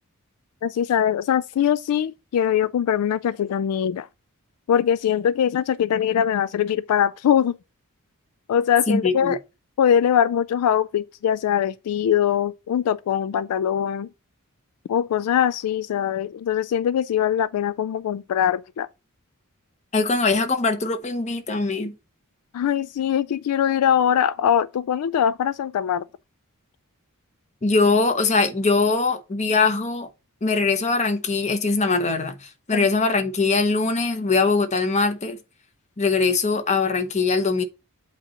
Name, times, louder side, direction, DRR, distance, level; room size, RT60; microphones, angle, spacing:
voice 1, 0.6-4.1 4.7-7.6 8.5-9.4 9.8-14.1 14.9-18.9 22.5-26.1 32.7-32.9, left 9 dB, 75° left, 0.3 m, -22 dB
voice 2, 8.9-9.4 19.9-21.9 27.6-30.1 30.4-35.4 36.0-37.6, left 4 dB, 30° left, 0.9 m, -22 dB
8.3 x 2.9 x 5.5 m
head